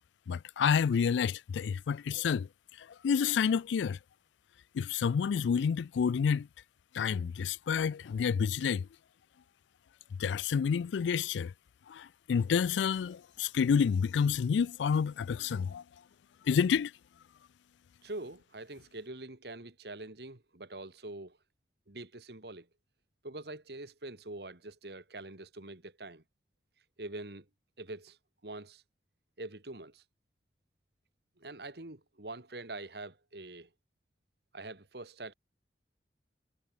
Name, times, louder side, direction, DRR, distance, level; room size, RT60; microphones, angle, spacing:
voice 1, 0.3-2.5 2.8-4.0 4.7-6.5 6.9-8.9 10.2-11.5 11.9-15.8 16.5-16.9, left 6 dB, 90° left, 0.3 m, -29 dB
voice 2, 18.0-21.4 21.9-22.7 23.2-26.2 27.0-27.5 27.8-28.2 28.4-28.8 29.4-30.0 31.4-33.7 34.5-35.3, right 2 dB, 65° right, 2.1 m, -44 dB
head